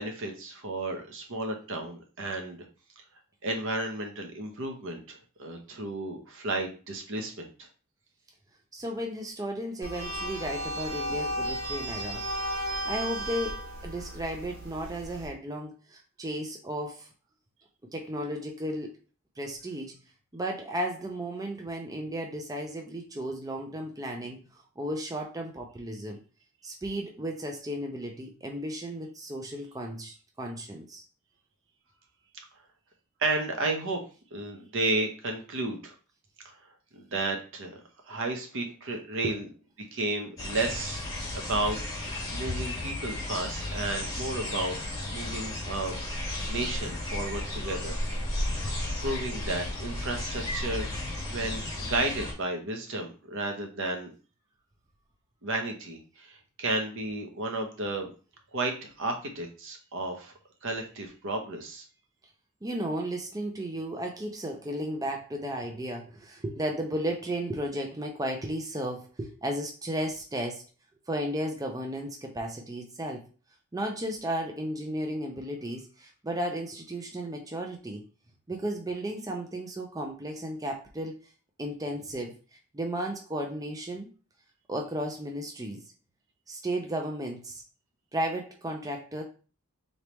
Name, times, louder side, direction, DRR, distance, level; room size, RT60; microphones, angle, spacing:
voice 1, 0.0-2.6 3.4-7.7 33.2-35.9 36.9-37.8 38.1-39.5 39.9-41.0 41.3-44.8 45.1-48.0 49.0-50.9 51.3-54.1 55.4-58.1 58.5-60.3 60.6-61.8, right 2 dB, 65° right, 3 dB, 0.9 m, -33 dB
voice 2, 8.7-12.2 12.5-13.5 13.8-17.1 17.9-18.9 19.4-19.9 20.3-26.2 26.6-31.0 39.2-39.4 62.6-70.6 71.1-73.2 73.7-78.0 78.5-81.1 81.6-82.3 82.7-84.1 84.7-85.8 86.5-87.6 88.1-89.2, right 1 dB, 15° right, 1 dB, 0.5 m, -34 dB
sound 1, 9.8-15.3, equal, 90° right, 1.4 m, -34 dB
sound 2, 40.4-52.3, left 1 dB, 15° left, 1.5 m, -34 dB
3.9 x 3.4 x 3.0 m, 0.36 s
head